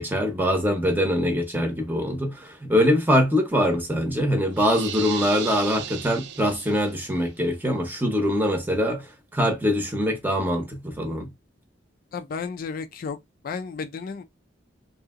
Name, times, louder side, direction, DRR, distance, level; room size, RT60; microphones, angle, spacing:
voice 1, 0.0-11.3, equal, 10° right, 0.7 m, -23 dB
sound 1, 4.5-7.1, right 9 dB, 65° right, 0.4 m, -35 dB
voice 2, 12.1-13.2 13.4-14.2, left 5 dB, 50° left, 0.3 m, -32 dB
2.7 x 2.7 x 2.4 m
head